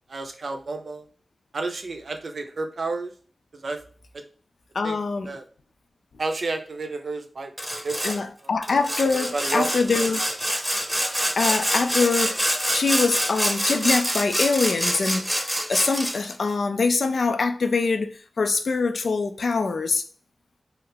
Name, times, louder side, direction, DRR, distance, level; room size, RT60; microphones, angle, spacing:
voice 1, 0.1-1.1 1.5-3.1 3.6-3.8 4.8-5.0 5.3-5.4 6.2-7.5 7.8-8.2 9.1-9.8, right 3 dB, 70° right, 0.5 m, -30 dB
voice 2, 4.7-5.3 8.0-10.2 11.4-12.4 12.7-15.2 15.7-20.0, left 4 dB, 75° left, 0.3 m, -24 dB
Sawing, 7.6-8.2 8.6-16.3, equal, 5° right, 0.8 m, -26 dB
3.1 x 2.4 x 3.3 m
cardioid pair, 55°, 0 cm